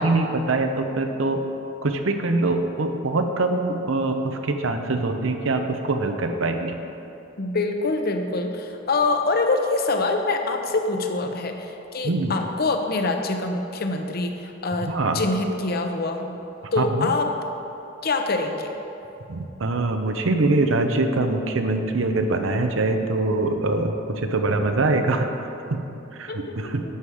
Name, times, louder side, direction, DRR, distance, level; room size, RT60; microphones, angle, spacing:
voice 1, 0.0-1.4 1.8-6.8 12.0-12.3 14.8-15.2 16.8-17.1 19.3-25.8 26.1-26.8, right 2 dB, 75° right, 6 dB, 0.8 m, -23 dB
voice 2, 7.4-14.9 15.1-16.4 16.7-17.3 18.0-18.7 26.3-26.5, left 3 dB, 50° left, 5 dB, 0.8 m, -25 dB
11.0 x 6.3 x 4.9 m, 2.9 s
head